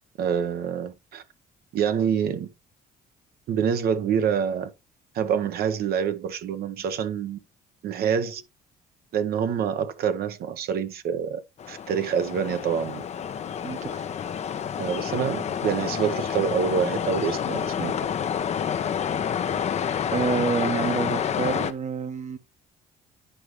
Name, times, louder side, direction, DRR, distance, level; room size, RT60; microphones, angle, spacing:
voice 1, 0.2-1.2 1.7-2.5 3.5-4.7 5.1-7.4 7.8-8.4 9.1-11.4 11.7-13.0 14.8-17.9, right 7 dB, 65° right, 1.0 m, -26 dB
sound 1, 11.6-21.7, left 8 dB, 40° left, 0.7 m, -29 dB
voice 2, 13.6-14.0 20.1-22.4, right 5 dB, 45° right, 1.1 m, -28 dB
10.0 x 4.8 x 3.1 m
cardioid pair, 110°, 17 cm